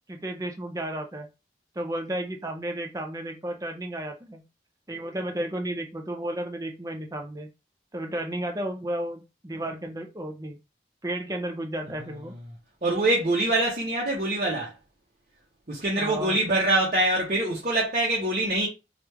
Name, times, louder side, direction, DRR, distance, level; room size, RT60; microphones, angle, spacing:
voice 1, 0.1-1.3 1.8-4.4 4.9-7.5 7.9-10.6 11.0-12.3 16.0-16.4, right 1 dB, 20° right, 0.5 m, -33 dB
voice 2, 12.8-14.7 15.7-18.7, right 2 dB, 45° right, 0.9 m, -24 dB
3.0 x 2.4 x 3.4 m
head